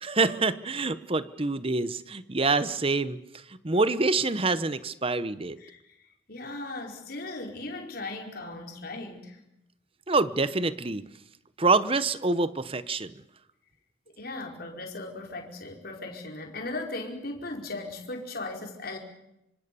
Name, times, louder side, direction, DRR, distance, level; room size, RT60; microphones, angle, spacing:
voice 1, 0.0-3.2 3.6-5.6 10.1-11.0 11.6-13.1, right 3 dB, 30° right, 15 dB, 1.0 m, -26 dB
voice 2, 6.3-9.4 14.2-19.0, left 2 dB, 55° left, 2 dB, 5.0 m, -37 dB
26.0 x 25.5 x 7.0 m, 0.86 s
head